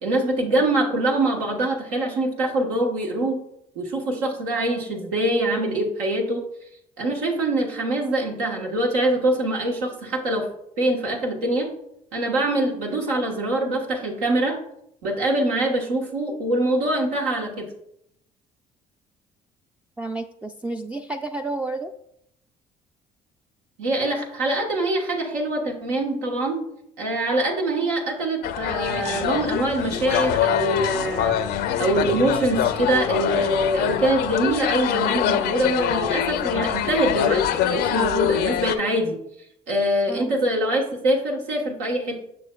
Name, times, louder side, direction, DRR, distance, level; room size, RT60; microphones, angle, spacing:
voice 1, 0.0-3.4 3.7-6.4 7.0-10.5 10.8-11.7 12.1-14.6 15.0-17.7 23.8-26.6 27.0-31.3 31.8-39.2 39.7-42.2, right 1 dB, 85° right, 0 dB, 1.2 m, -24 dB
voice 2, 20.0-21.9 40.1-40.4, right 2 dB, 5° right, 4 dB, 0.4 m, -31 dB
sound 1, 28.4-38.8, left 10 dB, 70° left, 0.5 m, -24 dB
6.8 x 6.3 x 2.3 m, 0.75 s
hypercardioid pair, 60°, 18 cm